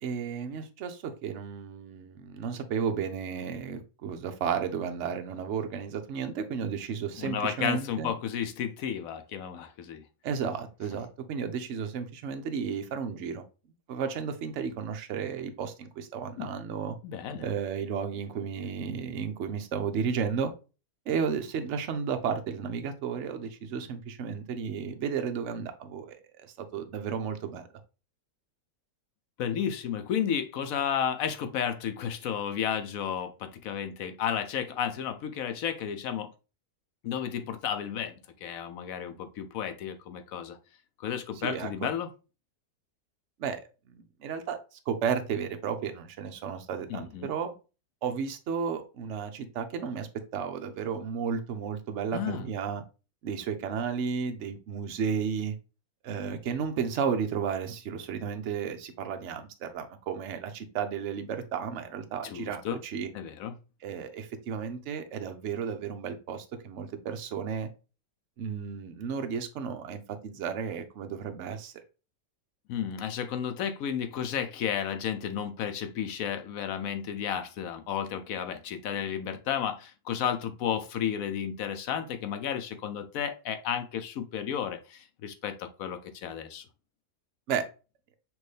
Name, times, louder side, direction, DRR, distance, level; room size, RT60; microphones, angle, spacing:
voice 1, 0.0-8.1 10.2-13.4 13.9-17.0 17.4-20.5 21.1-27.7 41.3-41.9 43.4-44.6 44.9-47.5 48.0-52.8 53.2-55.5 56.0-63.1 63.8-67.7 68.4-71.7 87.5-87.6, right 6 dB, 60° right, 0.9 m, -33 dB
voice 2, 7.2-10.0 16.4-16.5 17.0-17.5 29.4-36.3 37.0-38.1 38.4-40.6 41.0-42.1 46.9-47.3 52.1-52.5 62.2-62.8 63.1-63.5 72.7-86.6, left 8 dB, 75° left, 1.0 m, -32 dB
6.1 x 2.6 x 3.2 m
omnidirectional pair, 1.5 m